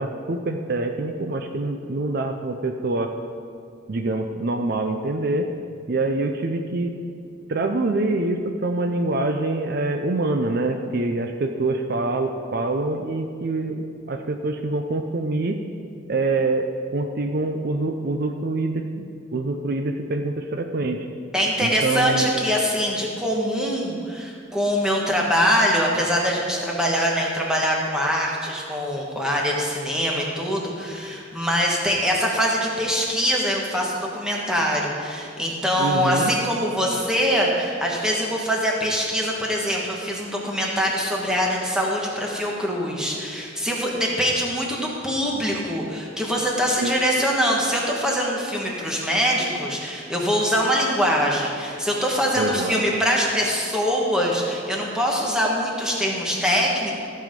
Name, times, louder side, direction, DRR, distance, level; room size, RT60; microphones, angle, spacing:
voice 1, 0.0-3.1 3.9-5.5 5.9-7.0 7.5-15.6 16.1-16.6 16.9-19.1 19.3-21.1 21.6-22.4 35.8-36.3 46.8-46.9 52.3-53.0, right 2 dB, 50° right, 5 dB, 0.5 m, -25 dB
voice 2, 21.3-56.9, equal, 5° right, -2 dB, 1.4 m, -23 dB
15.0 x 5.6 x 5.2 m, 2.3 s
head